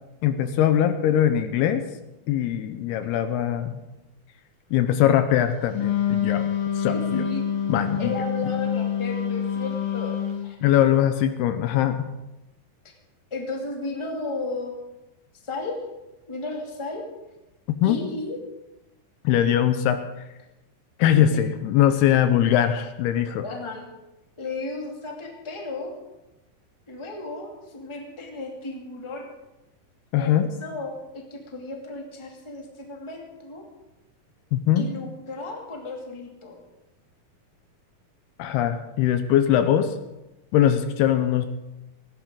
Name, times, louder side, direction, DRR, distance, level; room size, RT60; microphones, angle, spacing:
voice 1, 0.2-1.8 2.3-3.8 4.7-6.5 6.8-7.2 7.7-8.1 10.6-12.1 17.8-18.0 19.2-20.0 21.0-23.4 30.1-30.5 34.5-34.9 38.4-40.0 40.5-41.5, left 10 dB, 80° left, 9 dB, 2.7 m, -21 dB
Wind instrument woodwind instrument, 5.7-10.5, left 8 dB, 55° left, 2.8 m, -26 dB
voice 2, 6.9-7.4 8.0-10.2 10.4-10.5 13.3-14.7 15.4-15.8 16.3-17.0 17.8-18.4 21.1-21.4 23.4-23.8 24.4-25.9 26.9-29.3 30.2-33.6 34.7-36.6, left 2 dB, 10° left, 0 dB, 1.6 m, -34 dB
19.0 x 16.0 x 3.8 m, 0.98 s
omnidirectional pair, 4.8 m